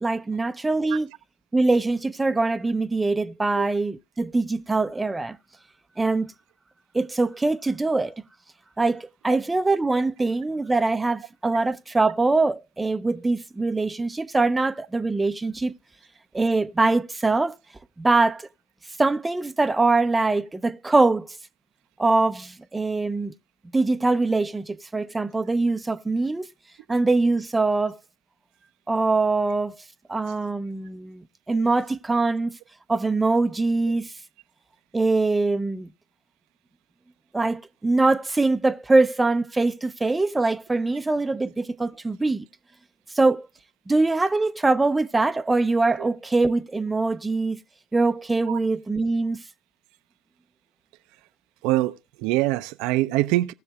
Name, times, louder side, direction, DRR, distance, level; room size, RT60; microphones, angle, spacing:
voice 1, 0.0-1.1 1.5-5.4 6.0-6.3 6.9-8.2 8.8-15.7 16.3-17.6 18.0-18.5 19.0-21.3 22.0-23.3 23.7-26.5 26.9-28.0 28.9-29.8 30.1-32.5 32.9-34.1 34.9-35.9 37.3-42.5 43.1-43.5 43.9-47.6 47.9-49.4, right 3 dB, 15° right, 0.5 m, -23 dB
voice 2, 51.6-53.5, right 17 dB, 60° right, 0.5 m, -24 dB
19.0 x 6.5 x 2.2 m
hypercardioid pair, 70°, 0 cm